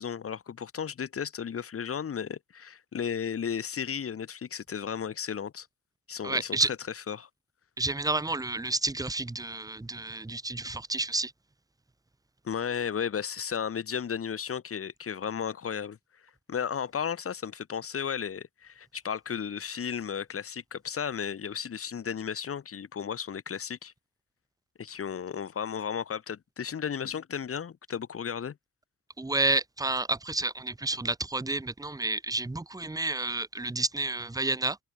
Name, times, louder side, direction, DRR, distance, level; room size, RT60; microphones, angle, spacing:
voice 1, 0.0-5.7 6.1-6.6 7.1-7.3 12.4-16.0 16.5-23.9 24.8-28.6, left 7 dB, 50° left, 3.6 m, -34 dB
voice 2, 6.2-6.7 7.8-11.3 29.2-34.8, right 2 dB, 10° right, 1.9 m, -30 dB
cardioid pair, 90°, 30 cm